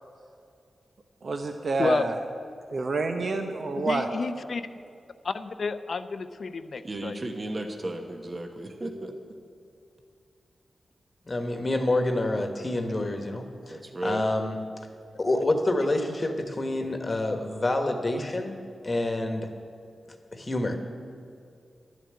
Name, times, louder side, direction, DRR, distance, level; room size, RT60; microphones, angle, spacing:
voice 1, 1.2-2.2 2.7-4.1, right 3 dB, 60° right, 5 dB, 0.7 m, -28 dB
voice 2, 3.8-4.7 5.2-7.2, left 4 dB, 60° left, 11 dB, 0.6 m, -31 dB
voice 3, 6.8-9.1 13.7-14.2, right 1 dB, 35° right, 4 dB, 1.1 m, -34 dB
voice 4, 11.3-13.8 14.0-14.6 15.2-18.6 18.8-19.5 20.3-20.8, left 2 dB, 35° left, 5 dB, 1.2 m, -27 dB
12.0 x 7.3 x 9.6 m, 2.4 s
wide cardioid pair, 80°, 0 cm